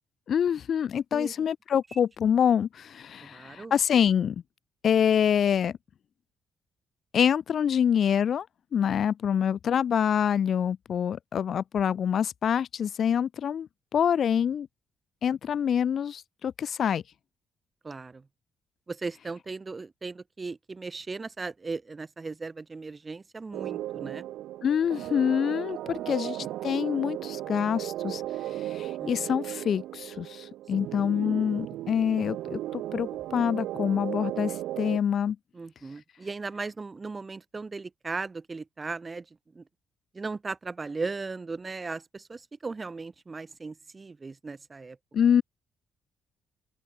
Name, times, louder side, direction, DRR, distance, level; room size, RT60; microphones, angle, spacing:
voice 1, 0.3-4.4 4.8-5.8 7.1-8.5 8.7-14.7 15.2-17.0 24.6-35.4 45.1-45.4, left 8 dB, 60° left, 0.6 m, -26 dB
voice 2, 3.2-3.7 17.8-18.2 18.9-24.2 25.8-26.5 29.0-29.1 35.5-39.3 39.5-39.6 40.1-45.0, right 4 dB, 25° right, 1.5 m, -37 dB
sound 1, 23.5-35.0, right 14 dB, 85° right, 0.7 m, -36 dB
open air
cardioid pair, 90°, 0 cm